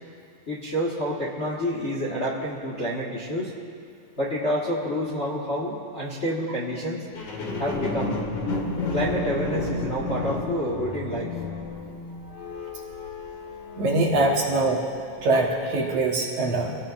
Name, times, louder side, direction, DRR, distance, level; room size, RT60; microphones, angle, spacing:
voice 1, 0.5-3.5 4.2-7.0 7.6-8.2 8.9-11.3, equal, 30° left, -5 dB, 1.4 m, -28 dB
sound 1, 7.1-14.6 15.2-15.3, left 3 dB, 75° left, 3.3 m, -32 dB
voice 2, 13.8-14.8 15.2-16.8, right 2 dB, 60° right, -1 dB, 2.2 m, -23 dB
25.5 x 17.5 x 2.6 m, 2.4 s
omnidirectional pair, 3.5 m